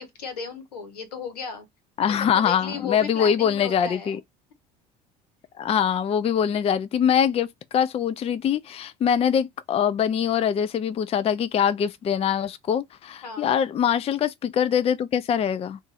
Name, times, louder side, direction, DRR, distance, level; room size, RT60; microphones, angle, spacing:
voice 1, 0.0-1.7 2.0-4.2 13.2-13.5, left 5 dB, 85° left, 1.1 m, -35 dB
voice 2, 2.0-4.2 5.6-7.5 7.7-15.8, left 8 dB, 30° left, 0.4 m, -23 dB
2.6 x 2.4 x 3.9 m
hypercardioid pair, 65°, 20 cm